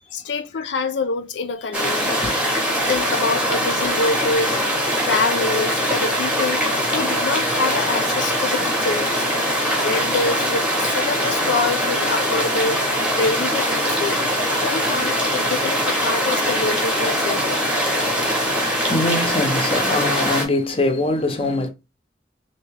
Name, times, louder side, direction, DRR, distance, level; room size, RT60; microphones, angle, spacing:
voice 1, 0.1-2.3 2.9-4.6 5.0-6.6 6.9-9.3 9.8-14.2 14.6-17.5, left 4 dB, 80° left, 0.5 m, -26 dB
sound 1, 1.7-20.4, equal, 5° right, 0.8 m, -22 dB
voice 2, 2.3-2.9 17.8-21.7, left 2 dB, 30° left, 0.6 m, -24 dB
3.3 x 2.7 x 3.2 m
head